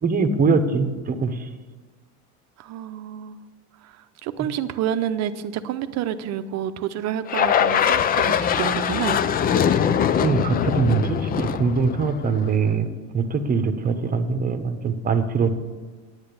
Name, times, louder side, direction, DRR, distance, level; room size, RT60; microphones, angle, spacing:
voice 1, 0.0-1.5 10.2-12.9 13.1-15.6, right 4 dB, 25° right, 9 dB, 1.0 m, -22 dB
voice 2, 2.6-3.4 3.8-9.2, right 10 dB, 45° right, 11 dB, 0.7 m, -29 dB
sound 1, 7.3-12.6, left 8 dB, 25° left, 0.4 m, -22 dB
9.7 x 8.7 x 6.9 m, 1.4 s
supercardioid pair, 120°, 36 cm